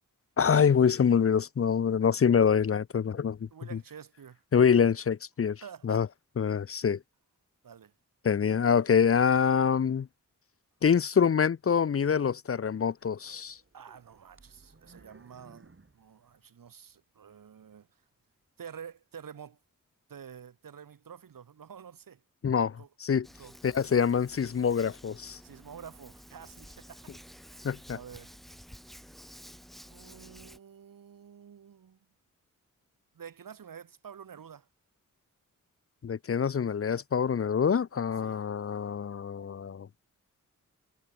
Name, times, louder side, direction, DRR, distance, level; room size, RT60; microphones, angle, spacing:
voice 1, 0.4-3.5 4.5-6.1 6.4-7.0 8.2-10.1 10.8-13.6 22.4-23.3 23.6-25.4 27.6-28.0 36.0-39.9, left 7 dB, 45° left, 0.6 m, -25 dB
voice 2, 3.5-4.4 5.6-6.1 7.6-7.9 13.7-17.9 18.6-19.6 20.1-22.2 22.8-22.9 23.4-23.6 25.4-27.1 27.5-28.4 29.9-32.0 33.1-34.7 38.2-38.5, right 7 dB, 85° right, 1.8 m, -49 dB
sound 1, 13.2-17.0 17.4-17.5 18.1-18.3, right 3 dB, 40° right, 6.4 m, -59 dB
Hands, 23.2-30.6, equal, ahead, 2.3 m, -51 dB
cardioid pair, 65°, 33 cm